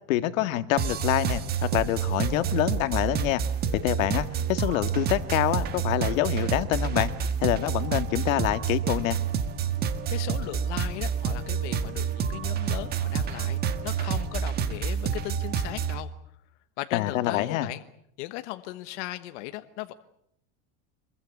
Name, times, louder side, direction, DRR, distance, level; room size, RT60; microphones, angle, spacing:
voice 1, 0.1-3.4 3.8-7.1 7.4-9.2 16.9-17.7, left 14 dB, 85° left, 11 dB, 1.9 m, -26 dB
sound 1, 0.8-16.0, right 7 dB, 25° right, 1.5 m, -28 dB
voice 2, 10.1-16.1 16.8-17.8 18.2-19.9, left 17 dB, 60° left, 9 dB, 1.3 m, -37 dB
25.5 x 22.5 x 8.3 m, 0.74 s
supercardioid pair, 175°, 39 cm